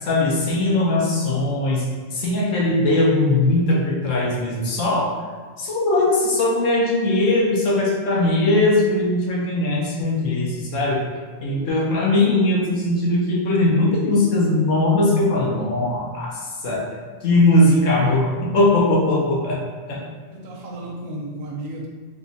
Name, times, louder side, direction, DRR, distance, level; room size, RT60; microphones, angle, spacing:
voice 1, 0.0-1.9 2.1-5.1 5.6-11.0 11.4-16.8 17.2-19.6 19.9-20.0, left 2 dB, 70° left, -3 dB, 1.1 m, -20 dB
voice 2, 11.4-11.7 19.9-20.0 20.3-21.9, right 1 dB, 75° right, -1 dB, 1.1 m, -34 dB
3.4 x 2.9 x 2.7 m, 1.5 s
omnidirectional pair, 1.4 m